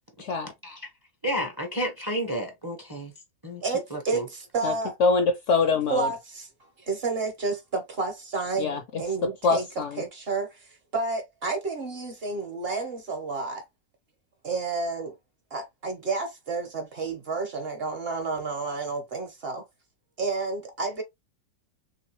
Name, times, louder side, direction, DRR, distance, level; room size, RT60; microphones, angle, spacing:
voice 1, 0.2-0.5 4.6-4.7 5.0-6.1 8.6-8.8 9.4-10.0, left 4 dB, 65° left, 0.8 m, -24 dB
voice 2, 1.2-3.1 3.4-3.6 3.9-4.2, equal, 20° right, 0.7 m, -30 dB
voice 3, 3.6-5.0 5.9-6.5 6.8-13.6 14.4-15.1 15.5-19.6 20.2-21.0, right 4 dB, 45° right, 1.0 m, -30 dB
3.3 x 3.0 x 3.0 m
omnidirectional pair, 1.6 m